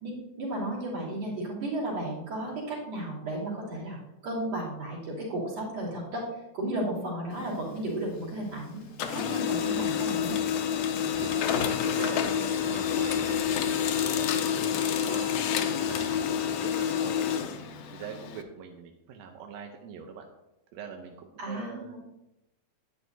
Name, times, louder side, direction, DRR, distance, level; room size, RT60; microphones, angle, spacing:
voice 1, 0.0-4.0 4.2-6.2 6.5-8.8 9.1-10.4 11.1-11.2 21.4-22.0, right 1 dB, 55° right, -6 dB, 4.0 m, -34 dB
Printer, 7.3-8.6 8.9-18.4, left 8 dB, 80° left, 2.1 m, -28 dB
sound 1, 8.0-16.9, right 1 dB, 10° right, 1.4 m, -47 dB
voice 2, 10.9-14.7 15.0-17.5 17.9-20.3 20.7-22.0, right 6 dB, 75° right, 3 dB, 1.7 m, -43 dB
11.0 x 9.5 x 2.7 m, 0.93 s
omnidirectional pair, 3.5 m